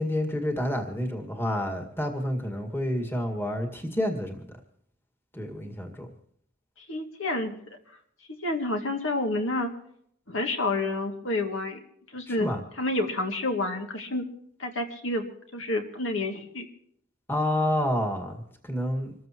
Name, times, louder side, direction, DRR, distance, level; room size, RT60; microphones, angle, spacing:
voice 1, 0.0-4.5 5.3-6.1 12.3-12.6 17.3-19.1, left 1 dB, 10° left, 4 dB, 2.0 m, -29 dB
voice 2, 6.8-7.6 8.4-9.7 10.3-11.8 12.1-12.5 12.8-14.3 14.6-15.3 15.5-16.7, left 2 dB, 65° left, 4 dB, 2.4 m, -29 dB
26.5 x 14.5 x 3.1 m, 0.68 s
head